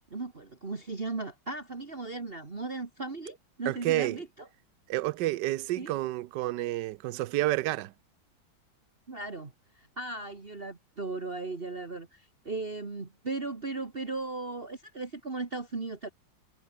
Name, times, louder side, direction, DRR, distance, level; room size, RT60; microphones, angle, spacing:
voice 1, 0.1-4.3 5.8-5.9 9.1-16.1, right 3 dB, 30° right, 2.2 m, -37 dB
voice 2, 3.7-4.2 4.9-7.9, right 16 dB, 70° right, 1.2 m, -30 dB
omnidirectional pair, 2.1 m